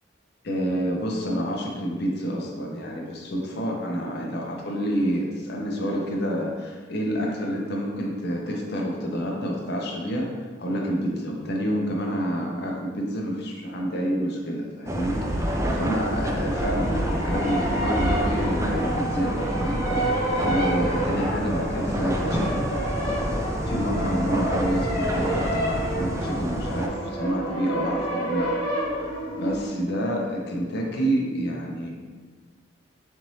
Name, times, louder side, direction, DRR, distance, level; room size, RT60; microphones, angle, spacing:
voice 1, 0.4-10.3 10.6-22.7 23.7-28.5 29.3-31.9, equal, 60° left, -1 dB, 0.7 m, -28 dB
sound 1, 14.9-26.9, equal, 15° right, 0.3 m, -28 dB
sound 2, 16.5-29.6, right 1 dB, 30° left, 1.3 m, -30 dB
4.3 x 2.7 x 3.2 m, 1.4 s
head